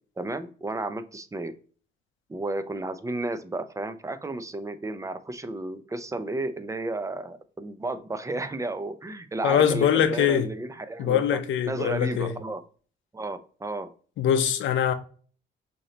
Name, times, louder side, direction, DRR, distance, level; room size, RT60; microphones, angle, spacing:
voice 1, 0.2-1.5 2.3-11.4 11.7-12.6 13.1-13.9, right 2 dB, 15° right, 0.6 m, -33 dB
voice 2, 9.4-10.5 11.0-12.3 14.2-14.9, left 9 dB, 75° left, 0.7 m, -23 dB
6.3 x 2.9 x 2.8 m
cardioid pair, 90°, 20 cm